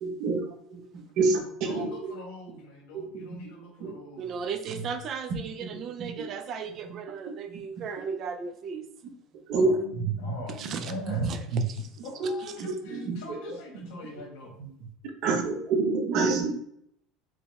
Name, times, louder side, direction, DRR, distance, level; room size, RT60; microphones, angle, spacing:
voice 1, 0.0-2.2 2.9-3.4 3.8-3.9 5.6-5.7 6.0-6.2 7.3-7.6 9.5-10.4 11.0-11.6 12.2-12.3 12.6-14.2 14.6-14.7 15.2-16.5, right 3 dB, 55° right, 3 dB, 0.7 m, -28 dB
voice 2, 1.6-4.2 9.5-11.3 12.0-14.5, left 2 dB, 80° left, 0 dB, 1.5 m, -42 dB
voice 3, 4.2-8.8 10.5-11.9 12.2-12.6, right 6 dB, 35° right, 8 dB, 0.4 m, -36 dB
4.7 x 2.0 x 3.5 m, 0.71 s
cardioid pair, 160°, 0 cm